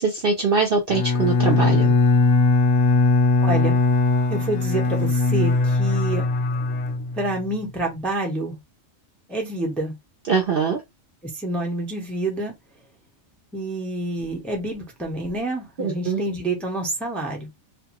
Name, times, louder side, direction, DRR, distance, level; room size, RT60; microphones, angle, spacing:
voice 1, 0.0-1.9 10.3-10.8 15.8-16.2, right 5 dB, 60° right, 0.6 m, -22 dB
Bowed string instrument, 0.9-7.5, left 3 dB, 70° left, 0.9 m, -20 dB
voice 2, 3.4-3.8 4.3-6.3 7.2-8.6 9.3-9.9 11.4-12.5 13.5-17.5, right 2 dB, ahead, 0.5 m, -27 dB
2.5 x 2.3 x 2.9 m
omnidirectional pair, 1.4 m